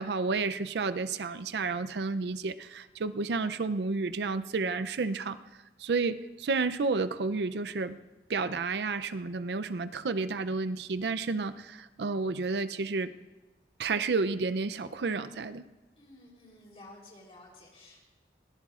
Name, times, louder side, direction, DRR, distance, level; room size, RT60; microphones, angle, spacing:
voice 1, 0.0-5.4 5.8-8.0 8.3-13.1 13.8-15.6, right 4 dB, 75° right, 12 dB, 0.5 m, -31 dB
voice 2, 16.0-18.0, left 2 dB, 35° left, -2 dB, 3.6 m, -52 dB
24.0 x 17.5 x 2.4 m, 1.1 s
head